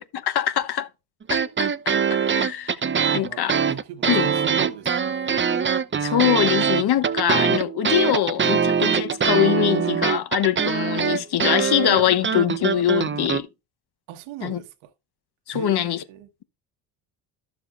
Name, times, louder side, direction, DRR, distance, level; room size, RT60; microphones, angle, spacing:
voice 1, 0.1-0.9 1.3-2.8 3.1-3.5 4.1-4.3 6.0-13.5 14.4-14.6 15.5-16.0, left 11 dB, 50° left, 1.0 m, -23 dB
sound 1, 1.2-13.4, right 7 dB, 25° right, 0.7 m, -23 dB
voice 2, 3.0-5.3 14.1-14.9 15.5-16.3, right 12 dB, 80° right, 1.4 m, -39 dB
12.0 x 6.9 x 2.5 m
hypercardioid pair, 60°, 49 cm